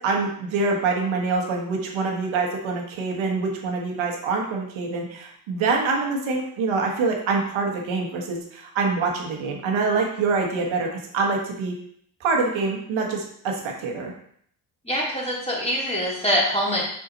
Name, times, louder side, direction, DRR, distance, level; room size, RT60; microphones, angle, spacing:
voice 1, 0.0-11.7 12.2-14.1, right 4 dB, 75° right, 0 dB, 1.4 m, -25 dB
voice 2, 14.8-16.8, equal, 15° left, -4 dB, 2.6 m, -24 dB
5.9 x 4.1 x 3.9 m, 0.65 s
cardioid pair, 75°, 47 cm